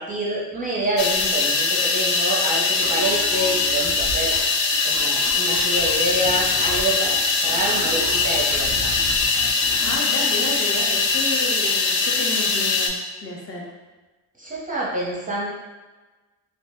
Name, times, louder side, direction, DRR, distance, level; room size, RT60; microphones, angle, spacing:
voice 1, 0.0-4.4 4.8-8.9 14.4-15.5, right 1 dB, 15° right, -5 dB, 0.6 m, -27 dB
sound 1, 1.0-12.9, left 4 dB, 65° left, 0.6 m, -22 dB
sound 2, 2.7-10.1, right 1 dB, 80° left, 1.1 m, -36 dB
voice 2, 9.8-13.0 13.2-13.6, left 2 dB, 30° left, -2 dB, 0.7 m, -31 dB
2.6 x 2.1 x 3.4 m, 1.2 s
cardioid pair, 100°, 48 cm